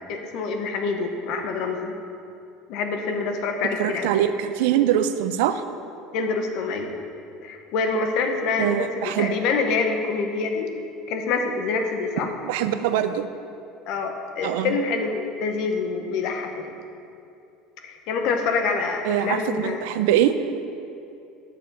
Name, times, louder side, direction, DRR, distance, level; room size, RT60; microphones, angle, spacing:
voice 1, 0.1-1.9 2.7-4.1 6.1-6.9 7.4-10.7 11.1-12.3 13.9-16.7 17.8-19.8, left 4 dB, 50° left, 4 dB, 1.0 m, -26 dB
voice 2, 3.8-5.6 8.6-9.3 12.5-13.3 14.4-14.8 19.1-20.4, right 11 dB, 75° right, 10 dB, 0.5 m, -23 dB
11.0 x 6.5 x 5.5 m, 2.6 s
cardioid pair, 175°, 0 cm